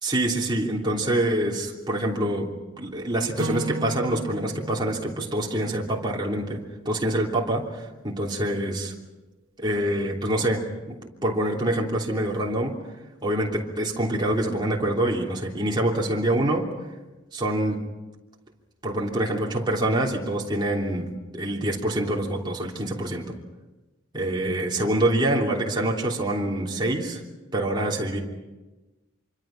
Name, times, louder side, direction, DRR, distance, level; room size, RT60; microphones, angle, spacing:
voice 1, 0.0-2.5 2.8-8.9 9.6-12.8 13.2-16.7 17.3-17.8 18.8-23.3 24.1-27.2 27.5-28.2, right 1 dB, 20° right, -2 dB, 3.2 m, -26 dB
Acoustic guitar / Strum, 3.4-6.7, right 1 dB, 80° right, 1.7 m, -35 dB
26.0 x 24.5 x 5.9 m, 1.1 s
head